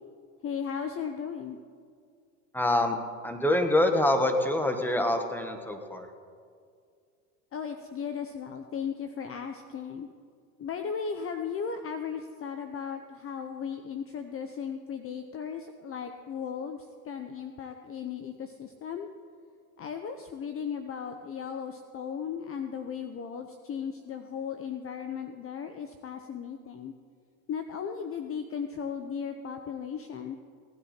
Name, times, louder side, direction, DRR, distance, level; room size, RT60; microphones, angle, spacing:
voice 1, 0.4-1.6 7.5-10.1 10.6-16.8 17.1-19.1 19.8-26.9 27.5-30.4, left 7 dB, 30° left, 7 dB, 0.7 m, -36 dB
voice 2, 2.5-3.0 3.2-6.1, left 1 dB, 5° left, 6 dB, 1.3 m, -25 dB
17.5 x 10.0 x 4.4 m, 2.1 s
supercardioid pair, 100°, 44 cm